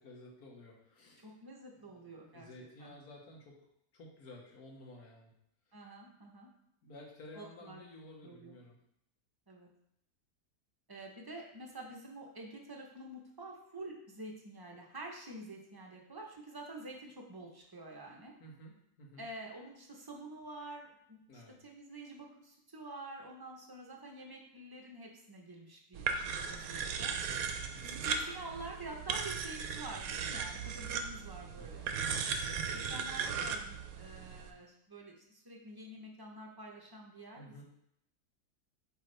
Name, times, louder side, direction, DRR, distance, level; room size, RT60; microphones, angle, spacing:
voice 1, 0.0-1.3 1.9-3.6 3.9-5.3 6.8-8.7 18.4-19.2 21.3-21.6 27.1-27.9 30.5-30.7 31.6-32.6 33.1-33.3 37.3-37.6, left 1 dB, 70° left, -1 dB, 1.7 m, -54 dB
voice 2, 1.2-2.5 2.8-2.9 5.7-6.5 7.3-7.8 8.2-8.6 9.5-9.7 10.9-18.3 19.2-27.2 27.8-31.9 32.7-37.6, right 2 dB, 25° right, -1 dB, 0.5 m, -48 dB
sound 1, 25.9-34.5, right 6 dB, 70° right, 1.0 m, -37 dB
8.1 x 3.6 x 3.3 m, 0.76 s
omnidirectional pair, 1.7 m